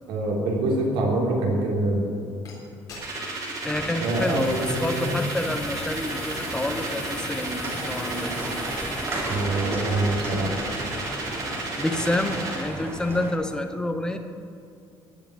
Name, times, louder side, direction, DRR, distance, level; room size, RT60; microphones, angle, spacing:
voice 1, 0.1-2.0 4.0-5.2 9.3-10.5, right 2 dB, 75° right, -2 dB, 3.5 m, -25 dB
sound 1, 2.4-2.5 2.9-3.5 4.0-9.6, left 5 dB, 40° left, 3.7 m, -44 dB
sound 2, 2.9-12.7, right 2 dB, 40° right, 3.0 m, -33 dB
voice 2, 3.6-8.3 11.8-14.2, left 1 dB, 10° left, 6 dB, 0.8 m, -28 dB
sound 3, 3.6-13.3, right 1 dB, 25° right, 2.3 m, -34 dB
15.0 x 5.8 x 9.9 m, 2.5 s
cardioid pair, 175°, 10 cm